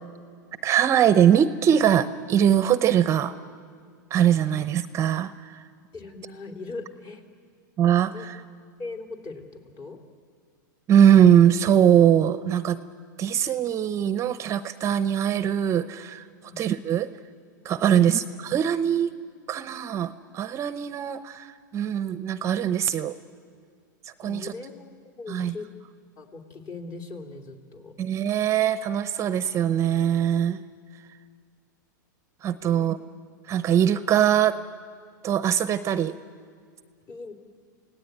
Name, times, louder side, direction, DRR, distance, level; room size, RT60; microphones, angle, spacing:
voice 1, 0.6-3.3 4.1-5.6 7.8-8.4 10.9-12.8 13.2-16.3 16.6-17.1 17.6-19.2 19.5-23.2 24.2-24.5 25.3-25.5 28.0-30.6 32.4-33.0 33.5-34.6 35.2-36.2, right 9 dB, 30° right, 13 dB, 0.7 m, -21 dB
voice 2, 5.9-7.2 8.1-8.2 8.8-10.0 16.4-16.6 17.8-18.2 24.2-25.7 26.2-27.9 32.6-32.9 37.1-37.3, left 3 dB, 35° left, 3 dB, 3.3 m, -40 dB
28.5 x 17.5 x 9.2 m, 2.1 s
hypercardioid pair, 125°, 10 cm